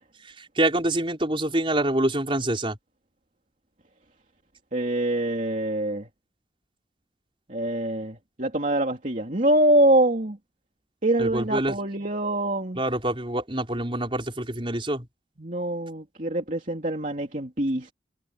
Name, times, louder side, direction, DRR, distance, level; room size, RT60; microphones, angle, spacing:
voice 1, 0.6-2.8 11.2-11.8 12.8-15.1, right 1 dB, 30° right, 5.3 m, -26 dB
voice 2, 4.7-6.1 7.5-10.4 11.0-12.8 15.4-17.9, right 1 dB, 45° right, 2.9 m, -24 dB
head